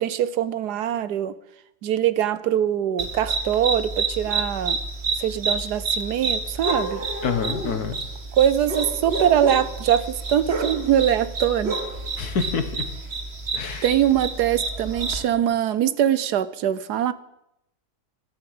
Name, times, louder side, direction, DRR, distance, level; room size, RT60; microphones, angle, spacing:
voice 1, 0.0-1.3 1.8-4.8 5.1-7.0 8.4-11.8 13.8-17.1, right 10 dB, 80° right, 15 dB, 1.4 m, -22 dB
sound 1, 3.0-15.2, right 3 dB, 40° right, 1.9 m, -29 dB
voice 2, 7.2-8.0 12.2-12.9 13.5-13.9, left 6 dB, 70° left, 9 dB, 1.9 m, -27 dB
14.0 x 12.0 x 7.9 m, 0.81 s
omnidirectional pair, 1.7 m